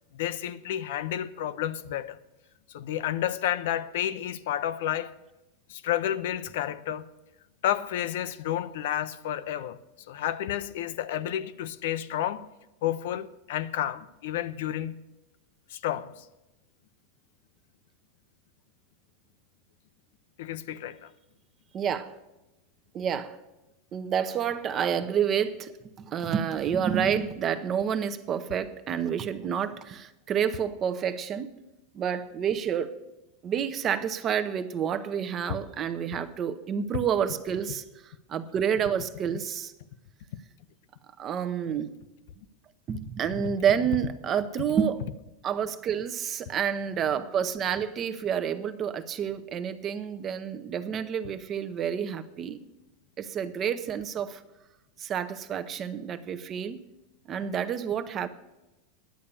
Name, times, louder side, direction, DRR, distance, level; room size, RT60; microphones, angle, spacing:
voice 1, 0.1-2.2 2.7-5.2 5.7-7.1 7.6-9.8 10.1-12.5 12.8-15.0 15.7-16.2 20.4-21.1, left 11 dB, 70° left, 0.6 m, -31 dB
voice 2, 21.7-22.2 22.9-23.4 23.9-25.7 26.0-31.5 31.9-32.9 33.4-39.7 41.2-42.0 42.9-45.0 45.4-52.6 53.2-54.4 55.0-56.8 57.3-58.3, right 8 dB, 30° right, 0.7 m, -29 dB
10.5 x 8.5 x 6.9 m
supercardioid pair, 140°, 0 cm